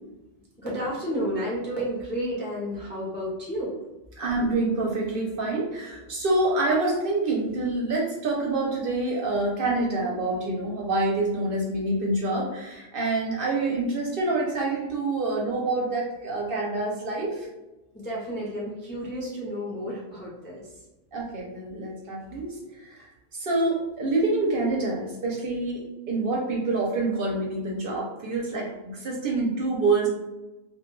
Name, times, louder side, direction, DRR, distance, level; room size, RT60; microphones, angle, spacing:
voice 1, 0.6-3.8 17.9-20.8, equal, 15° left, -5 dB, 0.3 m, -31 dB
voice 2, 4.2-17.5 21.1-30.1, right 2 dB, 60° right, -2 dB, 0.7 m, -27 dB
2.2 x 2.2 x 3.0 m, 1.0 s
omnidirectional pair, 1.2 m